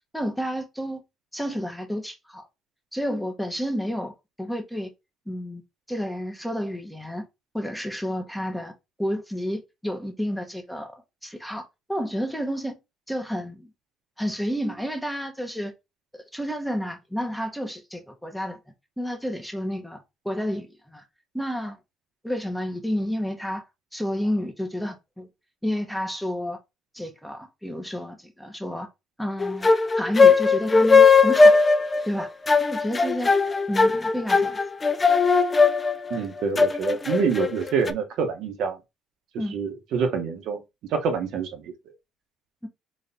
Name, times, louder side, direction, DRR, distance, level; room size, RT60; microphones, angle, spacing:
voice 1, 0.1-1.0 1.3-2.5 2.9-4.1 4.4-4.9 5.3-5.6 5.9-7.3 7.5-8.7 9.0-11.6 11.9-12.8 13.1-13.7 14.2-15.7 16.1-18.6 19.0-20.0 20.2-21.0 21.3-21.8 22.2-23.6 23.9-25.3 25.6-26.6 26.9-28.9 29.2-31.6 32.1-32.3 32.7-33.3 33.7-34.6 39.4-39.6 42.6-42.7, equal, ahead, 0.8 m, -30 dB
sound 1, 29.4-37.9, left 4 dB, 20° left, 0.3 m, -18 dB
voice 2, 36.1-38.8 39.3-40.6 40.9-41.7, right 6 dB, 70° right, 0.9 m, -26 dB
4.1 x 3.1 x 2.6 m
cardioid pair, 105°, 0 cm